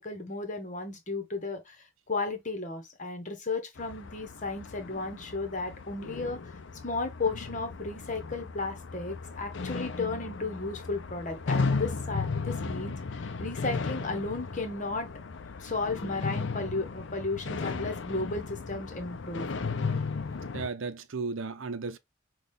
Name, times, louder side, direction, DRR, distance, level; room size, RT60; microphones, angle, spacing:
voice 1, 0.0-1.8 2.1-6.5 6.8-15.1 15.6-19.5, left 3 dB, 35° left, 1.2 m, -34 dB
sound 1, 3.8-20.7, left 4 dB, 60° left, 0.5 m, -35 dB
voice 2, 20.5-22.0, right 4 dB, 70° right, 0.7 m, -34 dB
6.1 x 2.5 x 3.5 m
head